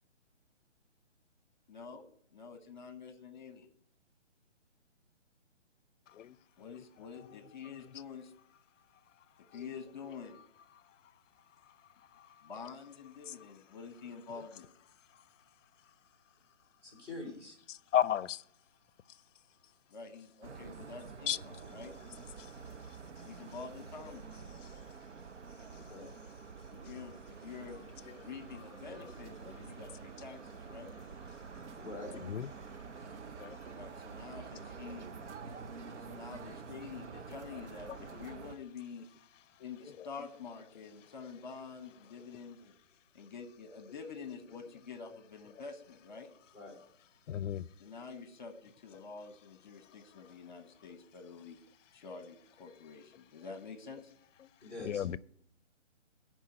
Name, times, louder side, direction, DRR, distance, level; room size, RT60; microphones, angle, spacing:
voice 1, 1.7-2.0 2.3-3.7 6.6-8.3 9.5-10.4 12.4-14.7 19.9-21.9 23.2-24.3 26.7-27.8 28.2-30.9 33.7-35.0 36.0-39.1 39.6-42.7 43.1-46.3 47.8-51.6 51.9-54.1, left 5 dB, 40° left, 1.1 m, -47 dB
voice 2, 16.8-17.6 25.7-26.1 31.7-32.2 46.5-46.8 54.6-55.1, left 2 dB, 5° right, 1.7 m, -45 dB
voice 3, 17.9-18.4 21.3-21.4 32.3-32.5 33.4-33.6 47.3-47.6 54.8-55.2, left 10 dB, 75° left, 0.5 m, -32 dB
sound 1, 20.4-38.6, right 5 dB, 65° right, 0.7 m, -48 dB
10.0 x 4.7 x 7.8 m
hypercardioid pair, 170°, 37 cm